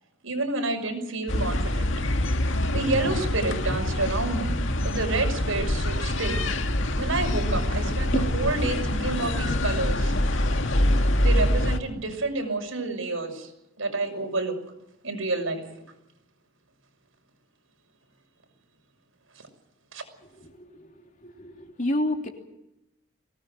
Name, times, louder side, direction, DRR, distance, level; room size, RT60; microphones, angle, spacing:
voice 1, 0.2-1.9 2.7-6.4 7.0-10.2 11.2-13.5 13.8-14.6 15.0-15.7 19.9-20.0, right 3 dB, 85° right, 4 dB, 6.0 m, -29 dB
sound 1, 1.3-11.8, left 1 dB, 70° left, 2.0 m, -25 dB
voice 2, 20.6-20.9 21.2-22.3, left 1 dB, 40° left, 3 dB, 3.2 m, -29 dB
23.0 x 18.5 x 7.8 m, 0.88 s
head